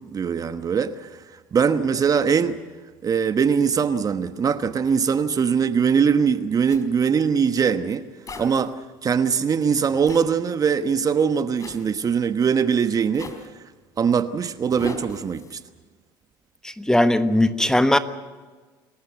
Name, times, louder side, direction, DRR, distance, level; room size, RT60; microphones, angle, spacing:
voice 1, 0.1-1.2 1.5-2.6 3.0-8.0 8.4-8.8 9.0-13.3 14.0-15.6, right 6 dB, 35° right, 1.2 m, -21 dB
Zipper (clothing), 6.7-6.9 8.3-8.7 10.1-10.3 11.6-11.9 13.2-13.5 14.7-15.6, left 2 dB, 30° left, 4.0 m, -37 dB
voice 2, 16.6-18.0, left 1 dB, 5° left, 1.3 m, -19 dB
27.5 x 14.5 x 8.1 m
hypercardioid pair, 80°, 11 cm